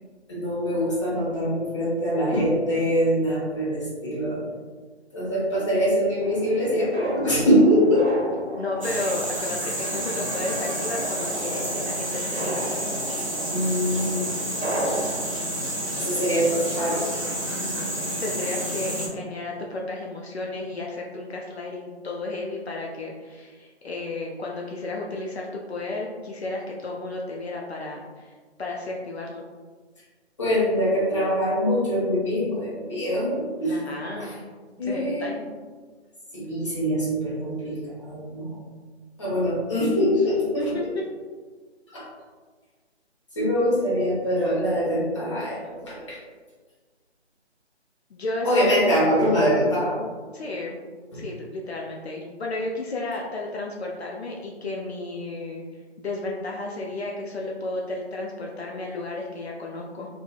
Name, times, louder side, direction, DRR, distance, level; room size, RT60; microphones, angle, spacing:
voice 1, 0.3-4.4 5.1-8.0 13.5-14.3 15.9-17.1 30.4-34.3 34.8-35.3 36.3-38.6 39.2-40.4 41.9-42.1 43.4-46.2 48.4-50.0 51.1-51.2, equal, 25° left, -7 dB, 0.7 m, -23 dB
sound 1, 6.2-15.2, right 1 dB, 85° right, 0.7 m, -34 dB
voice 2, 8.6-12.7 17.6-28.3 28.6-29.4 33.6-34.3 34.8-35.5 40.6-41.0 48.1-48.7 50.3-50.8 51.1-55.6 56.0-60.1, left 2 dB, 70° left, -2 dB, 0.5 m, -33 dB
sound 2, 8.8-19.1, right 1 dB, 30° right, 0.5 m, -30 dB
2.7 x 2.5 x 2.2 m, 1.5 s
figure-of-eight pair, 155°, 34 cm